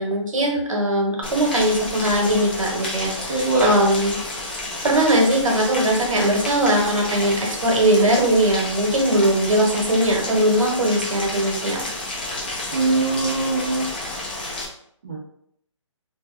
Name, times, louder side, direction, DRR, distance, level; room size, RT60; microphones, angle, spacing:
voice 1, 0.0-4.2 4.5-4.6 4.8-11.9, right 1 dB, 80° right, 0 dB, 1.0 m, -20 dB
Rain, 1.2-14.7, left 2 dB, 20° left, 0.3 m, -31 dB
voice 2, 3.3-3.7 12.7-13.9 15.0-15.2, right 3 dB, 35° right, -4 dB, 0.6 m, -22 dB
2.6 x 2.2 x 3.2 m, 0.69 s
hypercardioid pair, 165°, 17 cm